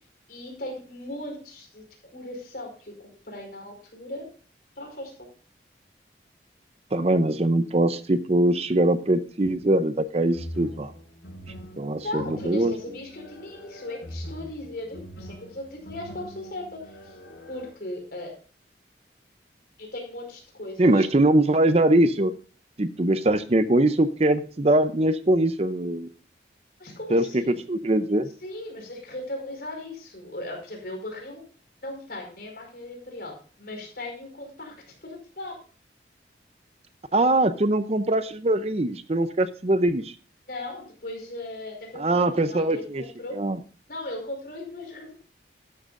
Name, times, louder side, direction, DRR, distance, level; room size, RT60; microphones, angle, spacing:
voice 1, 0.3-1.8 2.1-2.9 3.2-4.2 4.8-5.1 12.0-17.2 17.5-18.3 19.8-21.1 26.8-27.5 28.4-31.4 31.8-34.7 35.0-35.6 40.5-42.8 43.2-43.4 43.9-45.1, left 1 dB, 55° left, 1 dB, 4.9 m, -37 dB
voice 2, 6.9-10.9 11.8-12.7 20.8-22.3 22.8-26.1 27.1-28.3 37.1-40.1 42.0-43.0 43.3-43.6, right 1 dB, 35° right, 11 dB, 0.6 m, -22 dB
sound 1, 10.3-17.7, equal, 85° left, 5.9 m, -42 dB
13.0 x 11.5 x 2.6 m, 0.39 s
head